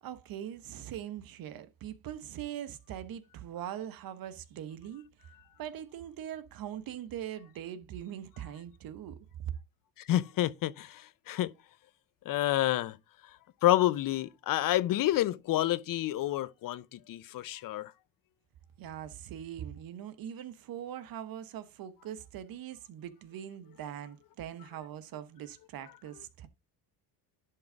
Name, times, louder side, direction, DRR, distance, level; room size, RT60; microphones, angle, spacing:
voice 1, 0.0-5.1 5.6-9.5 18.8-26.5, right 10 dB, 55° right, 1.1 m, -42 dB
voice 2, 10.0-11.5 12.3-13.0 13.6-17.9, left 14 dB, 50° left, 0.7 m, -29 dB
11.0 x 3.8 x 4.9 m
cardioid pair, 110°, 42 cm